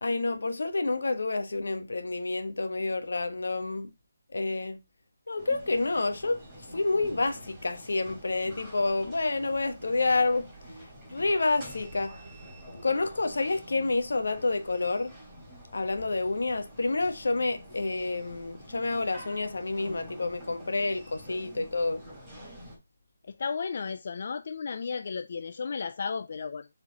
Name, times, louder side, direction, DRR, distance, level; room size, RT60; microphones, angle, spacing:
voice 1, 0.0-3.9 4.3-4.8 5.3-6.4 6.7-10.5 11.1-12.1 12.8-15.1 15.7-22.0, left 3 dB, 75° left, 1.3 m, -29 dB
sound 1, 5.4-22.8, equal, 10° right, 3.6 m, -47 dB
voice 2, 23.4-26.7, left 5 dB, 50° left, 0.3 m, -34 dB
7.1 x 4.3 x 4.1 m
figure-of-eight pair, 160°, 0 cm